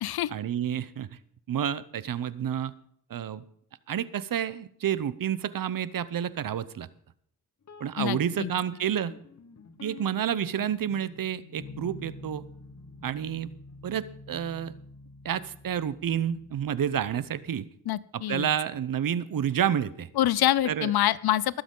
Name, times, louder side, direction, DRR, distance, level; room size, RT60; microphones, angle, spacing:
voice 1, 0.3-1.1 1.5-2.7 3.1-3.4 3.9-6.9 7.8-9.1 9.8-12.4 13.0-13.5 13.8-14.7 15.2-17.7 18.1-20.1 20.6-20.9, right 9 dB, 65° right, 16 dB, 0.8 m, -29 dB
sound 1, 7.6-17.4, left 2 dB, 45° left, 1.2 m, -48 dB
voice 2, 8.0-8.5 17.9-18.5 20.2-21.6, left 13 dB, 85° left, 20 dB, 0.6 m, -26 dB
21.5 x 7.8 x 3.8 m, 0.65 s
cardioid pair, 90°, 37 cm